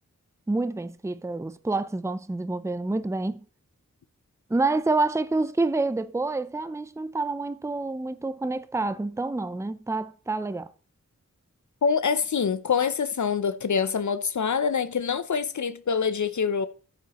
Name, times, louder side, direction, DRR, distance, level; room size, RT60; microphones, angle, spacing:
voice 1, 0.5-3.4 4.5-10.7, right 3 dB, 10° right, 0.5 m, -28 dB
voice 2, 11.8-16.7, left 6 dB, 70° left, 0.6 m, -25 dB
13.5 x 8.1 x 3.0 m
wide cardioid pair, 60°, 30 cm